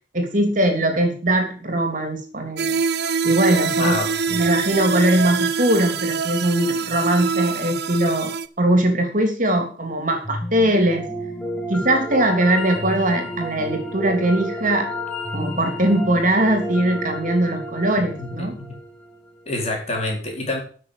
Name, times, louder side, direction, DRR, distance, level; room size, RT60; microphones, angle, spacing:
voice 1, 0.1-2.8 3.2-4.0 4.3-8.3 8.6-11.0 11.7-14.9 15.3-18.5, right 1 dB, 45° right, 4 dB, 3.1 m, -20 dB
sound 1, 2.6-8.5, right 5 dB, 60° right, 0.7 m, -24 dB
voice 2, 3.8-4.4 18.2-18.8 19.5-20.6, left 2 dB, 35° left, 0 dB, 4.2 m, -27 dB
sound 2, 10.2-19.4, equal, 10° left, 1.7 m, -31 dB
12.0 x 6.4 x 8.1 m, 0.42 s
head